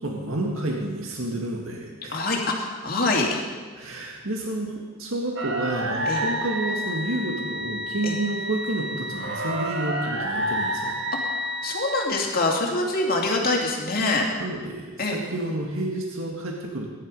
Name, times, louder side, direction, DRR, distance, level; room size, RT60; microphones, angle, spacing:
voice 1, 0.0-2.3 3.8-4.7 5.0-10.9 14.4-16.9, right 1 dB, 75° right, 0 dB, 2.0 m, -30 dB
voice 2, 2.1-3.4 6.1-6.2 8.0-8.2 11.6-14.3 15.0-15.2, left 2 dB, 45° left, 0 dB, 2.6 m, -24 dB
sound 1, 5.4-12.1, equal, 55° right, 1.6 m, -29 dB
20.5 x 11.0 x 5.4 m, 1.5 s
head